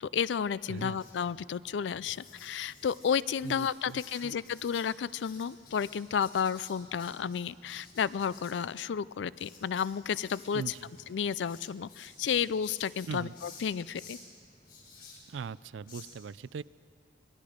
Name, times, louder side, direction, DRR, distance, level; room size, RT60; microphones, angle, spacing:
voice 1, 0.0-10.7 11.1-14.2, left 7 dB, 70° left, 19 dB, 0.4 m, -32 dB
voice 2, 0.7-1.0 3.4-4.3 10.5-10.9 13.1-13.3 15.3-16.6, right 5 dB, 85° right, 19 dB, 0.4 m, -40 dB
Writing, 0.8-16.0, left 3 dB, 55° left, 6.0 m, -54 dB
26.0 x 19.5 x 5.1 m, 2.4 s
head